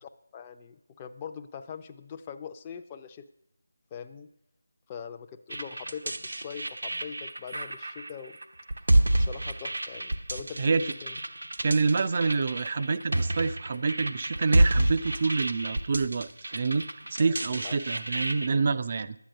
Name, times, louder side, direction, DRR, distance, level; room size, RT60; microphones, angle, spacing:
voice 1, 0.0-3.3 3.9-4.3 4.9-8.4 9.2-11.2 17.2-17.7, left 7 dB, 20° left, 6 dB, 0.6 m, -42 dB
sound 1, 5.5-18.5, right 1 dB, 70° right, 1.0 m, -29 dB
voice 2, 11.6-16.8 17.1-19.2, right 4 dB, 40° right, 12 dB, 0.5 m, -27 dB
11.5 x 9.4 x 6.5 m, 0.81 s
figure-of-eight pair, 165°, 0 cm